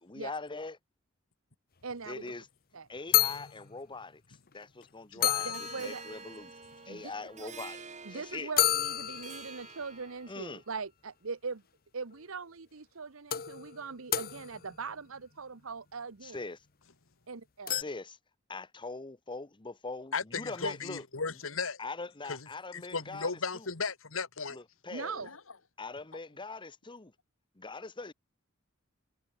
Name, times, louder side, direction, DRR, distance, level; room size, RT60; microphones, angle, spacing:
voice 1, 0.0-0.8 2.1-2.5 2.9-5.5 5.8-6.5 6.8-8.5 10.3-10.6 16.2-16.6 17.7-18.2 18.5-21.0 21.8-23.7 24.5-25.3 25.8-27.1 27.6-28.1, left 3 dB, 25° left, 1.1 m, -42 dB
voice 2, 1.8-2.3 2.7-2.9 5.1-6.0 6.9-7.1 7.4-7.5 8.0-11.6 11.9-16.4 17.3-17.8 24.9-25.3, right 4 dB, 75° right, 1.0 m, -41 dB
sound 1, 2.3-2.4 2.7-2.8 3.1-3.8 4.5-4.6 4.8-4.9 5.2-6.3 8.6-9.8 12.1-12.2 13.3-14.9 17.7-17.8, left 12 dB, 45° left, 1.1 m, -30 dB
Harp, 5.5-10.5, right 5 dB, 35° right, 1.8 m, -48 dB
voice 3, 20.1-21.8 22.2-22.5 22.7-24.6, left 4 dB, 70° left, 2.0 m, -35 dB
head